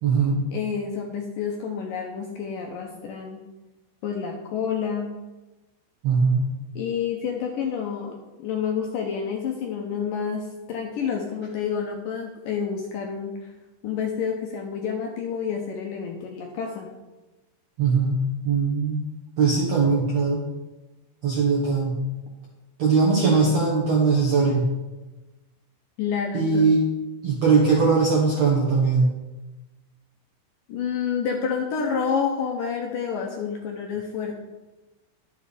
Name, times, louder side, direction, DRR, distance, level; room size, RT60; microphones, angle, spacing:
voice 1, 0.0-0.4 6.0-6.4 17.8-18.2 18.4-19.0 19.4-20.4 21.2-22.0 22.8-24.7 26.3-26.8 27.2-29.1, right 4 dB, 70° right, -2 dB, 1.6 m, -20 dB
voice 2, 0.5-3.4 4.0-5.2 6.8-13.5 13.8-16.9 26.0-26.7 30.7-34.4, left 6 dB, 75° left, 1 dB, 2.1 m, -29 dB
11.5 x 7.6 x 5.0 m, 1.1 s
omnidirectional pair, 4.9 m